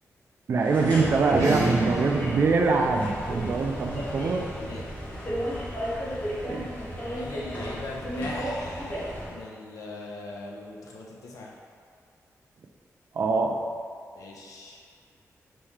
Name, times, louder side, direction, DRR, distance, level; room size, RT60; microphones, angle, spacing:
sound 1, 0.5-9.4, equal, 25° left, 1.0 m, -33 dB
voice 1, 0.5-4.5 6.4-6.6 13.1-13.6, right 4 dB, 45° right, 3 dB, 0.3 m, -24 dB
sound 2, 1.2-6.0, right 2 dB, 75° right, 1.0 m, -33 dB
voice 2, 4.6-5.2 7.1-11.5 14.1-14.8, left 2 dB, 85° left, -2 dB, 0.6 m, -40 dB
4.2 x 3.1 x 3.5 m, 2.1 s
wide cardioid pair, 180°, 6 cm